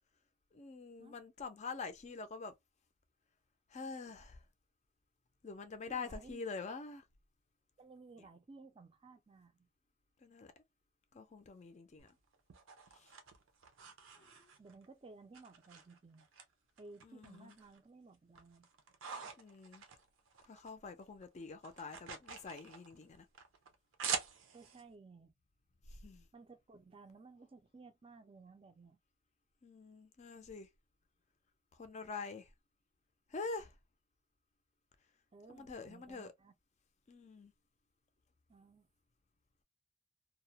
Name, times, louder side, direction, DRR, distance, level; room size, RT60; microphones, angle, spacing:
voice 1, 0.5-2.5 3.7-4.4 5.4-7.1 10.2-10.5 11.1-12.2 12.9-13.1 14.2-14.5 17.0-17.6 19.4-19.8 20.4-23.3 25.9-26.3 29.6-30.7 31.7-32.5 33.3-33.7 35.5-36.3 37.1-37.5, left 4 dB, 35° left, 0.4 m, -46 dB
voice 2, 5.9-6.5 7.8-9.7 14.6-16.3 16.8-18.7 24.5-25.3 26.3-29.0 35.3-36.5 38.5-38.9, right 3 dB, 25° right, 0.4 m, -57 dB
sound 1, 12.0-14.9 15.3-16.4 16.8-17.8 18.1-20.7 21.0-24.8, right 6 dB, 75° right, 0.6 m, -45 dB
2.3 x 2.0 x 2.7 m
head